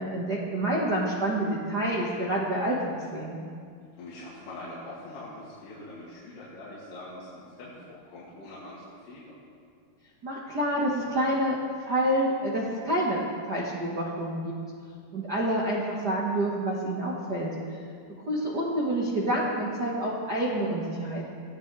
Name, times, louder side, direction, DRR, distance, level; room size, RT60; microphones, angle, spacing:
voice 1, 0.0-3.4 10.2-11.6 11.8-14.5 15.1-17.5 18.3-21.3, right 1 dB, 80° right, -4 dB, 0.9 m, -28 dB
voice 2, 4.0-9.4 18.4-18.6, left 1 dB, 75° left, -9 dB, 4.7 m, -43 dB
24.0 x 16.0 x 3.4 m, 2.2 s
omnidirectional pair, 4.8 m